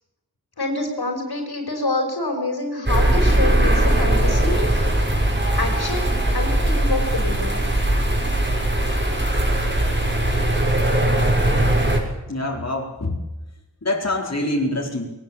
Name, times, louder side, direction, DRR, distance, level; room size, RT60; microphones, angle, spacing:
voice 1, 0.6-4.9 5.5-7.6, left 2 dB, 75° left, 3 dB, 5.7 m, -27 dB
sound 1, 2.9-12.0, right 1 dB, 30° right, 6.5 m, -20 dB
voice 2, 12.3-13.2 13.8-15.1, left 1 dB, 40° left, -2 dB, 4.4 m, -25 dB
21.0 x 19.5 x 8.5 m, 0.98 s
wide cardioid pair, 70°, 38 cm